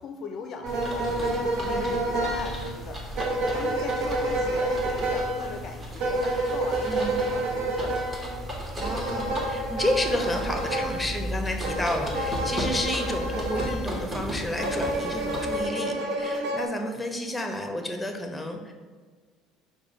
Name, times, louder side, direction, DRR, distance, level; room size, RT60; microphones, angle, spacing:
voice 1, 0.0-3.0 3.4-8.2, left 5 dB, 55° left, 5 dB, 0.4 m, -39 dB
sound 1, 0.6-14.1 14.6-16.6, right 1 dB, 70° right, 0.8 m, -29 dB
sound 2, 0.7-15.7, right 1 dB, 25° right, 1.2 m, -36 dB
voice 2, 1.6-2.0 4.1-4.4 6.9-7.1 8.8-18.7, left 1 dB, 10° left, 4 dB, 0.7 m, -31 dB
4.8 x 2.2 x 4.8 m, 1.5 s
supercardioid pair, 90°, 0 cm